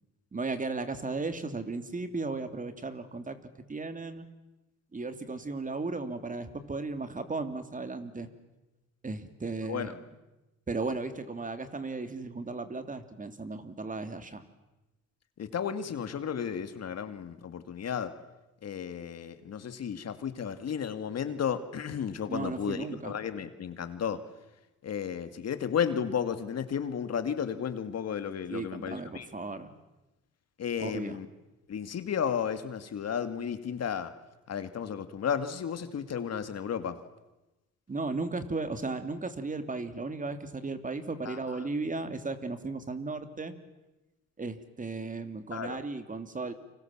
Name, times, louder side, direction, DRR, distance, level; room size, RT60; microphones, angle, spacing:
voice 1, 0.3-3.4 3.7-4.3 4.9-8.3 9.0-10.1 10.7-14.4 22.3-23.2 28.5-29.7 30.8-31.2 37.9-43.5 44.4-46.5, right 3 dB, 25° right, 9 dB, 3.1 m, -35 dB
voice 2, 15.4-18.1 18.6-24.2 24.8-29.3 30.6-31.3 31.7-34.1 34.5-37.0 41.2-41.4 45.5-45.8, left 7 dB, 55° left, 10 dB, 2.3 m, -33 dB
30.0 x 26.0 x 7.5 m, 1.0 s
cardioid pair, 90°, 30 cm